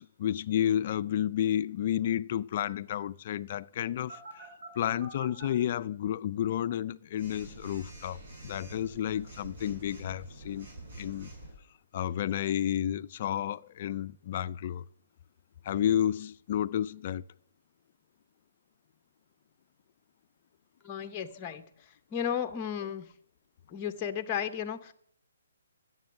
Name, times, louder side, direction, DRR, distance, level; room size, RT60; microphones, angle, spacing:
voice 1, 0.0-4.5 4.8-8.2 8.4-10.7 11.0-11.3 11.9-14.8 15.6-17.2, left 10 dB, 40° left, 0.4 m, -31 dB
Telephone, 4.1-5.5 7.2-11.5, right 2 dB, 50° right, 5.5 m, -47 dB
voice 2, 20.8-21.6 22.1-23.1 23.7-24.9, left 8 dB, 20° left, 0.8 m, -34 dB
13.0 x 7.9 x 6.4 m
hypercardioid pair, 155°, 0 cm